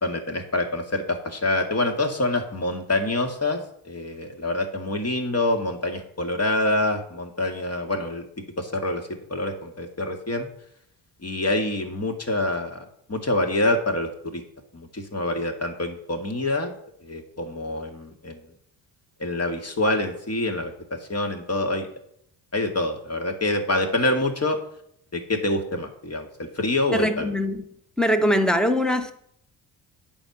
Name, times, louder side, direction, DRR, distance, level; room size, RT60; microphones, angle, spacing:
voice 1, 0.0-3.6 3.8-8.2 8.6-9.0 9.3-10.5 11.2-14.4 14.7-16.7 17.0-18.4 19.2-21.9 22.5-24.6 25.1-27.3, left 2 dB, 30° left, 2.3 m, -26 dB
voice 2, 26.9-27.6 28.0-29.1, equal, ahead, 1.4 m, -22 dB
8.7 x 5.4 x 7.3 m
hypercardioid pair, 50°, 49 cm